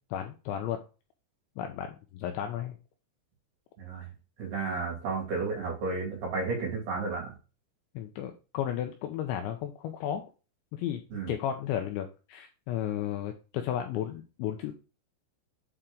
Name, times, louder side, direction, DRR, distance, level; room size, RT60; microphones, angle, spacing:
voice 1, 0.1-0.8 1.6-2.8 8.0-10.2 10.7-11.0 11.3-14.7, left 10 dB, 90° left, 5 dB, 2.6 m, -33 dB
voice 2, 3.8-4.1 4.4-7.3 11.1-11.3, right 4 dB, 55° right, -1 dB, 4.0 m, -32 dB
8.0 x 4.4 x 3.8 m, 0.32 s
omnidirectional pair, 5.9 m